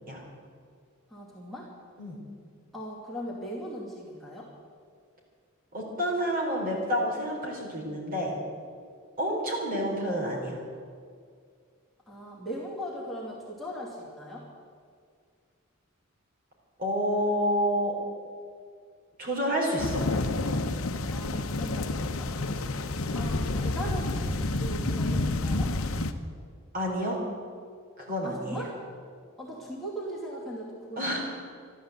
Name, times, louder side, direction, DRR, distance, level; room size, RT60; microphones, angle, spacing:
voice 1, 1.1-1.7 2.7-4.5 12.1-14.4 21.1-22.3 23.1-25.7 28.2-28.8 29.4-31.2, equal, ahead, -6 dB, 2.6 m, -39 dB
voice 2, 5.7-8.3 9.2-10.6 16.8-18.0 19.2-20.0 26.7-27.2 28.0-28.6 31.0-31.2, equal, 45° right, -2 dB, 4.2 m, -29 dB
sound 1, 19.8-26.1, left 2 dB, 70° left, 0.9 m, -29 dB
13.0 x 12.5 x 8.1 m, 2.2 s
head